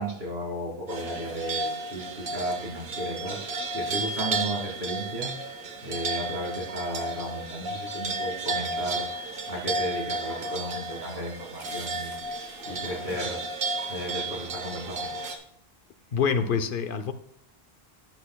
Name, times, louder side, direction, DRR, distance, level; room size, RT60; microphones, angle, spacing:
voice 1, 0.0-15.2, right 1 dB, 75° right, -2 dB, 2.7 m, -35 dB
sound 1, 0.9-15.4, right 2 dB, 60° right, 1.2 m, -33 dB
Chicken rooster, 8.5-15.3, equal, 35° right, 2.7 m, -50 dB
voice 2, 16.1-17.1, left 6 dB, 60° left, 11 dB, 0.8 m, -26 dB
12.0 x 8.7 x 2.2 m, 0.67 s
omnidirectional pair, 1.1 m